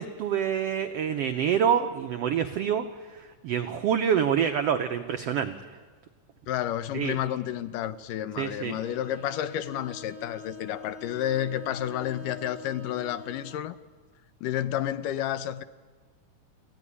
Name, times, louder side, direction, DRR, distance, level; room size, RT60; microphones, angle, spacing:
voice 1, 0.0-5.5 6.9-7.2 8.4-8.8, right 8 dB, 85° right, 1.3 m, -27 dB
voice 2, 6.5-13.8 14.4-15.6, left 11 dB, 80° left, 2.3 m, -31 dB
Bowed string instrument, 8.7-13.7, left 4 dB, 15° left, 0.7 m, -45 dB
22.0 x 15.5 x 9.9 m
omnidirectional pair, 3.8 m